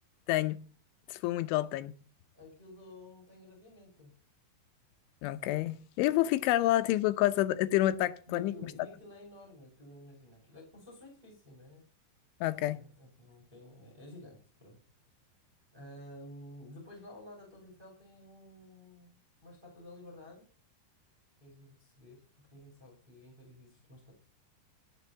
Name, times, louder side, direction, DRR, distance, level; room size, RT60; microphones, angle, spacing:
voice 1, 0.3-0.6 1.1-1.9 5.2-8.5 12.4-12.8, left 15 dB, 90° left, 3.3 m, -28 dB
voice 2, 2.3-4.1 8.3-11.8 12.7-14.8 15.7-20.4 21.4-24.2, left 1 dB, 10° right, 4.9 m, -52 dB
16.0 x 7.2 x 6.9 m
omnidirectional pair, 5.3 m